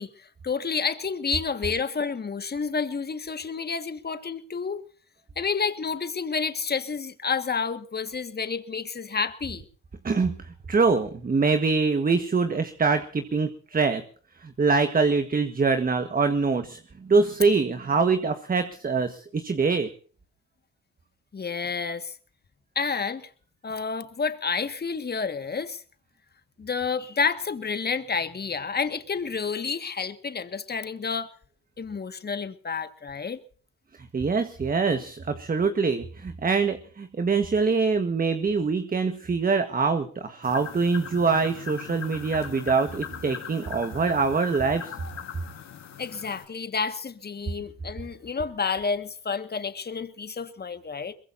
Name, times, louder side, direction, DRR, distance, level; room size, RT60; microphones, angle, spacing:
voice 1, 0.0-4.8 5.4-9.6 21.3-22.1 22.8-23.3 23.6-25.8 26.6-31.4 31.8-33.4 46.0-51.1, left 5 dB, 35° left, 1.8 m, -30 dB
voice 2, 10.0-14.0 14.4-19.9 34.1-44.9, right 4 dB, 30° right, 1.5 m, -24 dB
sound 1, 40.4-46.4, left 8 dB, 60° left, 3.9 m, -40 dB
23.0 x 21.5 x 2.7 m
cardioid pair, 90°, 30 cm